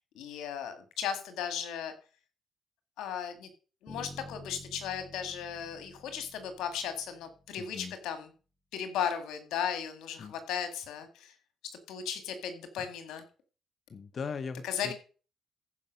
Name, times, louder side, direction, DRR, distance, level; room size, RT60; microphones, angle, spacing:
voice 1, 0.2-1.9 3.0-3.5 3.8-8.3 8.7-11.3 11.9-13.3 14.6-14.9, left 8 dB, 85° left, 8 dB, 2.1 m, -36 dB
Bass guitar, 3.9-7.8, left 2 dB, 10° left, 3.7 m, -51 dB
voice 2, 7.6-7.9 10.2-10.3 13.9-14.9, left 5 dB, 45° left, 11 dB, 0.9 m, -39 dB
14.5 x 5.4 x 6.3 m, 0.38 s
cardioid pair, 90°, 0 cm